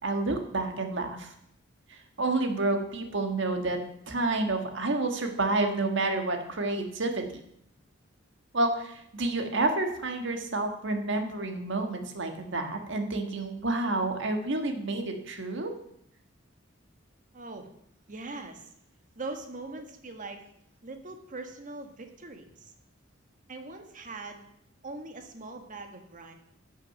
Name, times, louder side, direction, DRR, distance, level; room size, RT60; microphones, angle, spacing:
voice 1, 0.0-1.3 1.9-3.8 4.1-7.2 8.5-15.7, right 2 dB, 65° right, 5 dB, 1.6 m, -29 dB
voice 2, 17.3-17.7 18.1-18.7 19.1-20.4 20.8-22.7 23.5-24.4 24.8-26.3, right 3 dB, 40° right, 5 dB, 1.5 m, -41 dB
10.5 x 6.4 x 6.5 m, 0.73 s
head